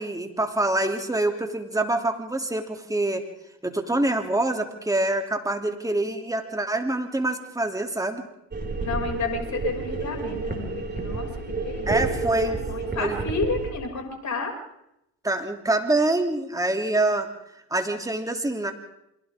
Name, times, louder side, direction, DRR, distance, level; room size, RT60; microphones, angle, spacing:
voice 1, 0.0-3.2 3.6-8.2 11.9-12.6 12.9-13.2 15.2-17.3 17.7-18.7, right 2 dB, 5° right, 4 dB, 3.1 m, -25 dB
sound 1, 8.5-13.7, right 3 dB, 20° right, 6.0 m, -30 dB
voice 2, 8.8-11.9 12.4-14.5, left 4 dB, 35° left, 2 dB, 6.6 m, -31 dB
28.5 x 25.0 x 3.7 m, 0.83 s
hypercardioid pair, 65°, 45 cm